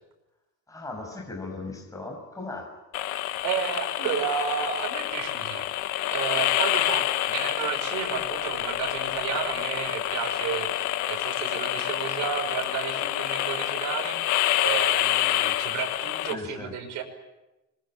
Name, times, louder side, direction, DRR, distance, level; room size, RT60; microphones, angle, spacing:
voice 1, 0.7-2.7 16.3-16.7, left 3 dB, 10° left, 1 dB, 6.3 m, -37 dB
sound 1, 2.9-16.3, left 14 dB, 70° left, 1.5 m, -27 dB
voice 2, 3.4-5.7 6.1-14.3 14.6-17.0, right 7 dB, 65° right, 3 dB, 5.9 m, -32 dB
26.0 x 23.0 x 9.0 m, 1.0 s
cardioid pair, 150°, 31 cm